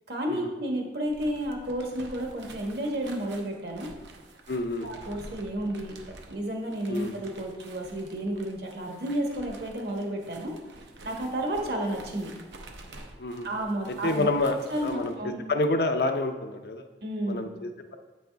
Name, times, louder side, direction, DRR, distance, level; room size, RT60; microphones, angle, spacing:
voice 1, 0.1-3.9 4.8-6.0 6.3-10.5 11.0-12.3 13.4-14.3 14.7-15.4 17.0-17.4, right 1 dB, 65° right, 1 dB, 1.3 m, -31 dB
sound 1, 1.0-15.2, right 2 dB, 85° right, 0.8 m, -49 dB
voice 2, 4.5-4.9 6.9-7.1 13.2-13.5 14.0-14.6 14.8-15.1 15.5-16.8 17.3-18.0, left 2 dB, 60° left, 6 dB, 0.6 m, -28 dB
8.2 x 5.2 x 3.4 m, 1.3 s
head